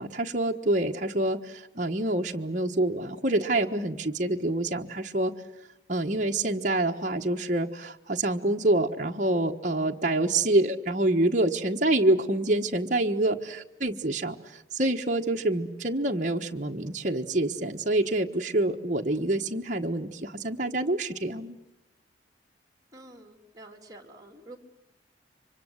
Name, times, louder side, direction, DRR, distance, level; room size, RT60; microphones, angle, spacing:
voice 1, 0.0-5.3 5.9-21.6, right 2 dB, 45° right, 1 dB, 1.3 m, -27 dB
voice 2, 22.9-24.6, right 2 dB, 20° right, 5 dB, 3.2 m, -48 dB
29.5 x 25.0 x 8.0 m, 0.91 s
head